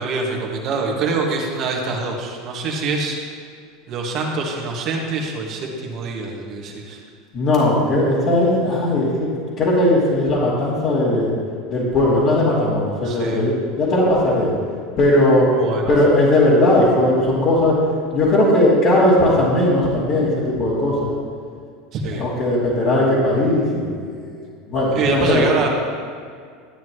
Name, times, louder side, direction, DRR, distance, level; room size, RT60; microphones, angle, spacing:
voice 1, 0.0-3.2 3.9-7.0 13.0-13.4 15.6-15.9 21.9-22.3 24.9-25.7, right 4 dB, 50° right, 0 dB, 1.9 m, -25 dB
voice 2, 7.3-9.3 9.6-11.3 11.7-14.5 15.0-15.5 15.9-17.8 18.1-21.1 22.2-24.3 24.7-25.4, left 1 dB, 50° left, -10 dB, 2.9 m, -18 dB
13.0 x 9.2 x 3.1 m, 2.1 s
hypercardioid pair, 80°, 0 cm